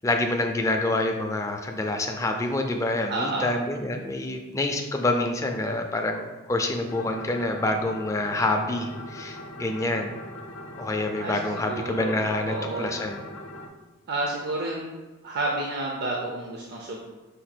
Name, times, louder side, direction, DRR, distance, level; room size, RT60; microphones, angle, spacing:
voice 1, 0.0-10.1 10.8-13.2, left 2 dB, 15° left, 3 dB, 0.3 m, -27 dB
voice 2, 3.1-3.5 11.2-12.1 12.5-12.9 14.1-14.9 15.2-17.0, right 2 dB, 50° right, -2 dB, 0.5 m, -30 dB
sound 1, 6.9-13.7, left 1 dB, 70° left, 0.5 m, -41 dB
5.0 x 2.2 x 4.3 m, 1.2 s
head